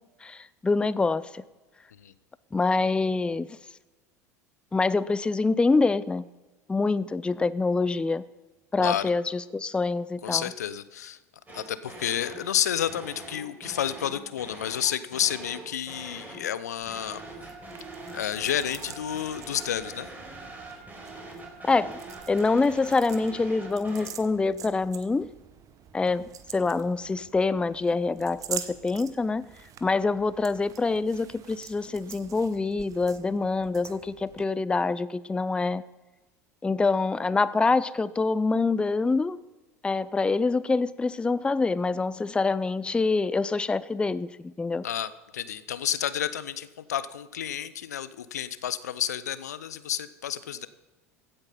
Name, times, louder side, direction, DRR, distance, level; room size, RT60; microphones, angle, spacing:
voice 1, 0.2-1.4 2.5-3.6 4.7-6.3 6.7-8.2 8.7-10.5 21.6-22.0 22.3-25.3 25.9-29.5 29.8-35.8 36.6-39.4 39.8-44.8, left 3 dB, 10° left, 18 dB, 0.4 m, -25 dB
voice 2, 10.2-11.2 11.5-17.2 18.1-20.1 44.8-50.7, left 10 dB, 80° left, 15 dB, 0.7 m, -30 dB
sound 1, 11.5-12.5 12.9-16.5 16.9-24.1, right 2 dB, 20° right, 4.5 m, -43 dB
sound 2, 16.8-34.4, right 9 dB, 40° right, 1.1 m, -45 dB
15.5 x 8.7 x 5.8 m, 1.2 s
hypercardioid pair, 75°, 9 cm